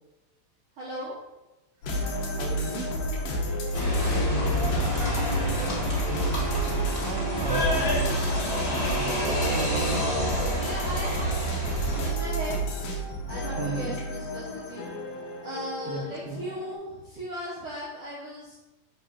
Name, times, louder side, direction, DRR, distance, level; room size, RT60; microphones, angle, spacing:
voice 1, 0.8-1.1 3.9-4.6 5.7-6.1 9.7-12.6 13.3-14.9 15.4-18.6, right 1 dB, 75° right, -7 dB, 1.2 m, -38 dB
sound 1, 1.8-16.7, equal, 80° left, 1.4 m, -31 dB
voice 2, 2.4-3.0 5.8-6.5 7.0-8.2 8.6-10.4 13.6-13.9 15.9-16.5, right 4 dB, 90° right, 7 dB, 2.4 m, -36 dB
sound 2, 3.7-12.1, equal, 25° left, 1.3 m, -28 dB
4.8 x 3.6 x 5.6 m, 1.0 s
omnidirectional pair, 4.0 m